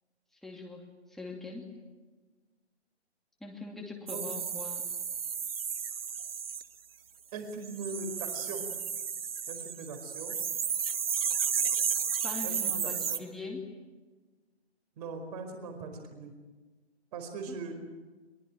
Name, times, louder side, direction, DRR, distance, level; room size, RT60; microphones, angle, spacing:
voice 1, 0.4-1.7 3.4-4.9 12.2-13.7 17.5-17.6, left 3 dB, ahead, 0 dB, 2.5 m, -42 dB
sound 1, 4.1-6.6 7.6-13.2, right 7 dB, 60° right, 1.4 m, -33 dB
voice 2, 7.3-8.6 9.5-10.4 12.4-12.8 13.1-13.2 15.0-16.3 17.1-17.7, right 4 dB, 35° right, 6 dB, 4.8 m, -40 dB
23.5 x 22.5 x 9.0 m, 1.3 s
figure-of-eight pair, 130°, 33 cm